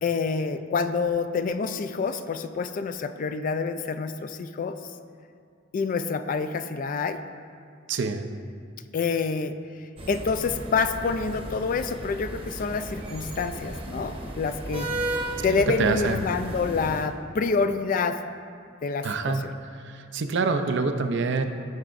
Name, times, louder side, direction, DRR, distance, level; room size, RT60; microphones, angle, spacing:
voice 1, 0.0-4.8 5.7-7.2 8.9-9.5 10.1-14.9 15.4-18.2 18.8-19.5, left 4 dB, 45° left, 9 dB, 0.3 m, -27 dB
voice 2, 7.9-8.3 15.5-16.2 19.0-19.5 19.8-21.4, right 4 dB, 65° right, 7 dB, 0.5 m, -26 dB
sound 1, 10.0-17.0, right 1 dB, 30° right, 0.8 m, -35 dB
14.0 x 4.7 x 2.5 m, 2.3 s
head